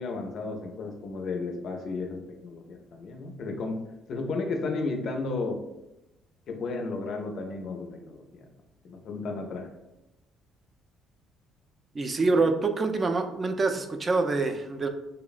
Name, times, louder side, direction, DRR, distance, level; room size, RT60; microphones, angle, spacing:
voice 1, 0.0-3.8 4.1-5.6 6.5-8.5 8.8-9.7 12.3-12.4, left 3 dB, 60° left, 3 dB, 0.4 m, -33 dB
voice 2, 11.9-14.9, right 3 dB, 35° right, 6 dB, 0.3 m, -26 dB
2.8 x 2.0 x 2.4 m, 0.93 s
supercardioid pair, 80°, 0 cm